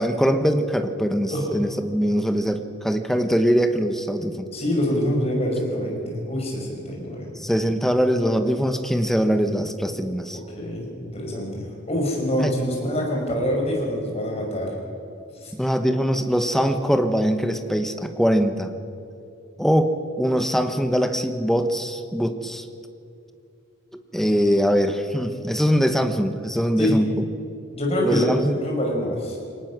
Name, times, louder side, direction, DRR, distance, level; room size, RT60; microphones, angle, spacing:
voice 1, 0.0-4.5 7.4-10.4 12.4-12.5 15.5-18.7 19.6-22.6 24.1-27.1 28.0-28.6, equal, ahead, 7 dB, 1.0 m, -22 dB
voice 2, 4.5-7.3 10.5-14.8 15.4-15.5 26.8-27.0 27.7-28.3 28.5-29.4, equal, 30° left, -1 dB, 5.3 m, -25 dB
23.0 x 19.0 x 6.2 m, 2.6 s
head